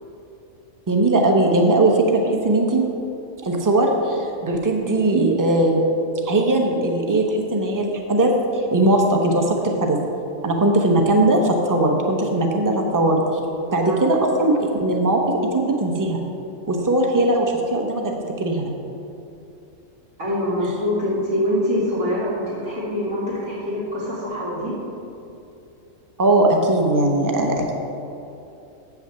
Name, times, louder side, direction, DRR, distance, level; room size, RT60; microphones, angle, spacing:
voice 1, 0.9-2.9 3.4-5.8 6.2-10.0 10.4-13.2 13.7-15.2 15.5-16.2 16.7-18.7 26.2-27.7, right 2 dB, 20° right, 2 dB, 0.7 m, -19 dB
voice 2, 13.6-14.0 20.2-24.7, left 1 dB, 85° right, -8 dB, 2.6 m, -24 dB
7.8 x 5.9 x 6.8 m, 2.8 s
omnidirectional pair, 1.3 m